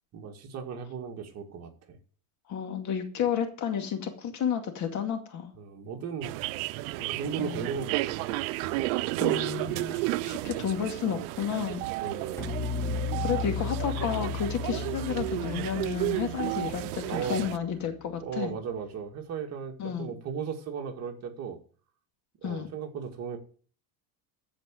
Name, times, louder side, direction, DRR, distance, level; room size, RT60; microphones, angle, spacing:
voice 1, 0.1-2.0 5.6-6.3 6.9-8.2 8.6-8.9 10.1-10.4 12.0-12.5 14.6-14.7 16.4-16.5 17.1-17.4 18.2-21.6 22.4-23.4, right 6 dB, 40° right, 2.1 m, -36 dB
voice 2, 2.5-5.5 7.4-7.7 9.2-11.8 13.2-17.0 17.3-18.5 19.8-20.1 22.4-22.7, left 8 dB, 45° left, 2.2 m, -31 dB
sound 1, 6.2-17.6, right 19 dB, 85° right, 0.7 m, -32 dB
sound 2, 12.4-17.6, left 6 dB, 5° left, 1.9 m, -35 dB
14.0 x 5.0 x 7.7 m
cardioid pair, 150°, 40 cm